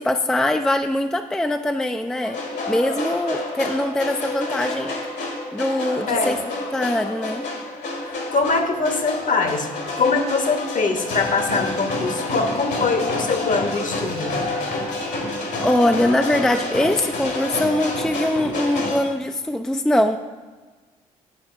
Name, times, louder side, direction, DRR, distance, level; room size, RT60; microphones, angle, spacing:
voice 1, 0.0-2.4 2.7-4.9 5.5-6.4 6.7-7.5 15.6-20.2, left 1 dB, 5° left, 6 dB, 0.4 m, -22 dB
sound 1, 2.2-19.0, left 2 dB, 65° left, 1.8 m, -28 dB
voice 2, 8.1-9.7 10.0-14.3, left 4 dB, 45° left, 6 dB, 1.1 m, -23 dB
9.2 x 4.3 x 5.6 m, 1.3 s
hypercardioid pair, 50°, 19 cm